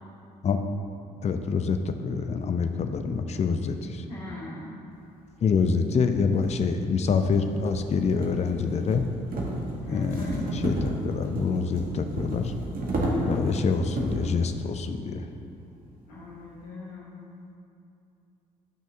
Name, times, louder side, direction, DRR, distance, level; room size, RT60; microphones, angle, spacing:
voice 1, 1.2-4.1 5.4-9.0 9.9-12.5 13.3-15.3, left 5 dB, 30° left, 7 dB, 0.5 m, -26 dB
voice 2, 4.1-4.7 9.8-10.5 16.1-17.2, left 2 dB, 75° left, -6 dB, 1.6 m, -40 dB
sound 1, 5.5-5.6 6.3-14.4, right 1 dB, 45° right, 1.5 m, -32 dB
10.0 x 5.9 x 2.8 m, 2.6 s
figure-of-eight pair, 45°, 21 cm